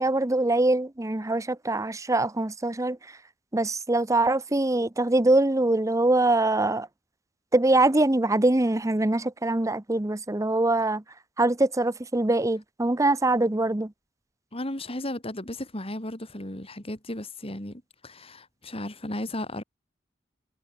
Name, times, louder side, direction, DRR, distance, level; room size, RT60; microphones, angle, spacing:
voice 1, 0.0-3.0 3.5-6.9 7.5-11.0 11.4-13.9, right 2 dB, 15° right, 0.8 m, -23 dB
voice 2, 14.5-19.6, left 1 dB, 30° left, 4.3 m, -35 dB
head